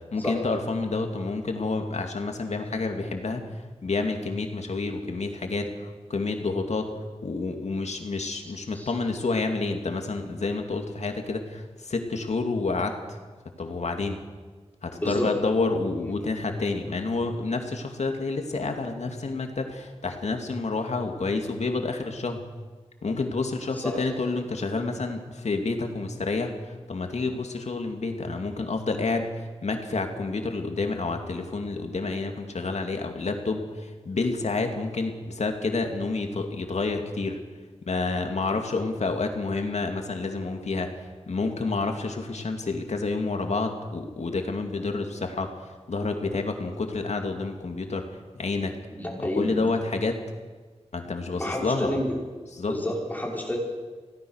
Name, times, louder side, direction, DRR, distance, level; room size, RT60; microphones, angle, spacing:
voice 1, 0.1-3.5 3.8-6.9 7.2-13.2 13.6-14.2 14.8-22.5 23.0-37.4 37.8-48.0 48.4-48.7 49.3-50.2 50.9-52.0 52.5-52.7, left 3 dB, 80° left, 4 dB, 2.5 m, -29 dB
voice 2, 14.9-15.3 16.0-16.1 23.8-24.0 48.9-49.6 51.3-52.2 52.7-53.6, left 1 dB, 15° left, -2 dB, 5.5 m, -29 dB
25.0 x 17.5 x 6.5 m, 1.4 s
wide cardioid pair, 90°, 11 cm